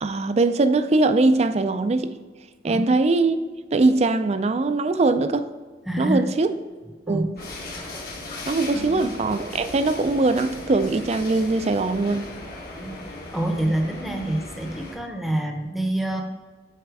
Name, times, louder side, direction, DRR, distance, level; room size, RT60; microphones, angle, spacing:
voice 1, 0.0-2.1 2.6-3.4 3.7-5.5 6.0-6.6 7.1-7.3 8.5-12.3, right 3 dB, 40° right, 0.4 m, -21 dB
voice 2, 5.9-6.2 7.1-7.3 8.7-9.0 12.8-13.0 13.3-16.2, right 1 dB, ahead, 0.8 m, -26 dB
sound 1, 7.4-15.0, left 2 dB, 55° left, 1.5 m, -37 dB
8.2 x 4.3 x 4.7 m
head